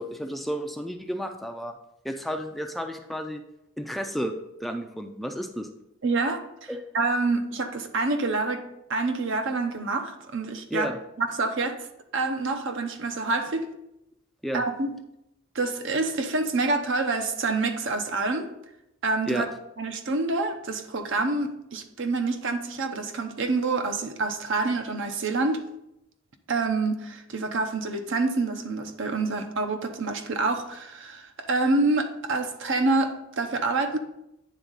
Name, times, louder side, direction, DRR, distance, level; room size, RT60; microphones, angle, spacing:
voice 1, 0.0-1.8 2.0-3.4 3.8-4.3 4.6-5.7 6.7-6.8 10.7-11.0 14.4-14.6 19.3-19.5, equal, ahead, 4 dB, 0.4 m, -32 dB
voice 2, 6.0-8.6 8.9-10.9 11.2-11.7 12.1-13.7 14.5-14.9 15.5-18.5 19.0-19.5 19.8-25.6 26.5-34.0, right 3 dB, 65° right, 6 dB, 0.7 m, -27 dB
9.3 x 3.6 x 4.0 m, 0.84 s
head